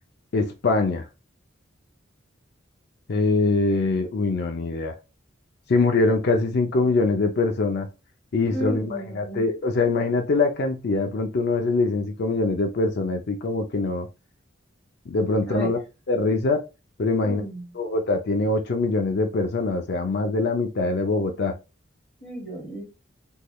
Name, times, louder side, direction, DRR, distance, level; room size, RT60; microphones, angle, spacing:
voice 1, 0.3-1.0 3.1-4.9 5.7-7.9 8.3-14.1 15.1-15.8 16.1-16.6 17.0-17.4 17.8-21.5, left 3 dB, 55° left, 4 dB, 0.5 m, -23 dB
voice 2, 8.5-9.5 15.4-15.7 17.2-17.7 22.2-22.8, right 1 dB, 5° left, -4 dB, 1.9 m, -33 dB
3.6 x 3.1 x 2.2 m, 0.28 s
head